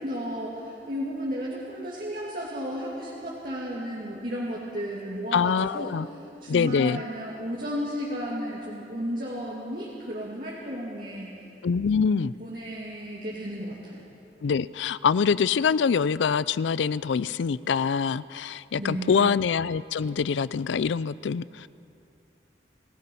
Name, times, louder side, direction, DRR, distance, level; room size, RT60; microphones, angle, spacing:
voice 1, 0.0-6.0 6.4-11.3 11.9-14.0 18.8-19.3, equal, 50° right, -5 dB, 2.5 m, -33 dB
voice 2, 5.3-6.1 6.5-7.0 11.6-12.3 14.4-21.7, left 6 dB, 85° left, 19 dB, 0.4 m, -25 dB
28.5 x 17.0 x 5.5 m, 2.8 s
head